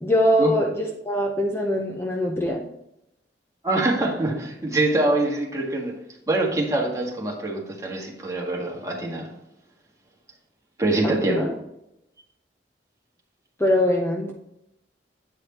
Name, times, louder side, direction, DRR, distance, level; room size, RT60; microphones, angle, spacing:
voice 1, 0.0-2.6 11.0-11.5 13.6-14.3, equal, 15° left, 0 dB, 0.8 m, -23 dB
voice 2, 3.6-5.9 6.3-9.3 10.8-11.5, right 2 dB, 20° right, -2 dB, 1.8 m, -24 dB
9.1 x 4.8 x 4.3 m, 0.82 s
head